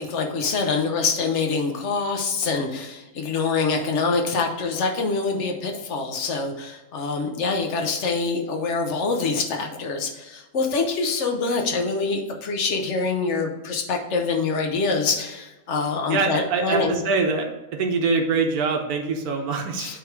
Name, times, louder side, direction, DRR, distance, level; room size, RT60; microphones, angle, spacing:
voice 1, 0.0-17.0 19.8-20.0, left 4 dB, 55° left, 3 dB, 1.3 m, -25 dB
voice 2, 16.1-17.5 17.7-20.0, right 4 dB, 80° right, 3 dB, 1.4 m, -24 dB
8.4 x 3.5 x 4.7 m, 1.0 s
omnidirectional pair, 1.6 m